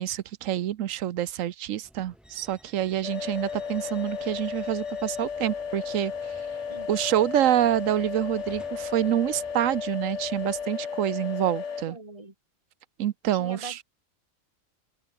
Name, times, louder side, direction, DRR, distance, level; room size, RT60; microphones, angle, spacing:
voice 1, 0.0-6.1 6.9-12.0 13.0-13.8, right 12 dB, 80° right, 1.1 m, -27 dB
sound 1, 1.8-10.7, equal, ahead, 3.6 m, -55 dB
sound 2, 3.0-11.8, left 6 dB, 65° left, 1.8 m, -34 dB
voice 2, 11.9-12.3 13.3-13.8, right 2 dB, 25° right, 2.8 m, -41 dB
open air
omnidirectional pair, 1.3 m